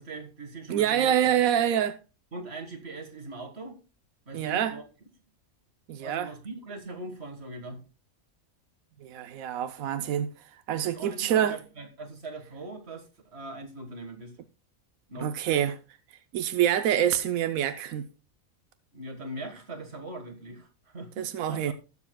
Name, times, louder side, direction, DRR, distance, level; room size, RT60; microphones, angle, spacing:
voice 1, 0.0-1.3 2.3-3.8 4.3-4.8 5.9-7.8 10.7-14.4 15.1-15.3 18.9-21.7, right 2 dB, 50° right, 1.9 m, -41 dB
voice 2, 0.7-2.0 4.3-4.8 5.9-6.3 9.0-11.6 15.2-15.8 16.3-18.1 21.2-21.7, right 10 dB, 85° right, 1.1 m, -26 dB
19.0 x 7.1 x 2.2 m
omnidirectional pair, 1.4 m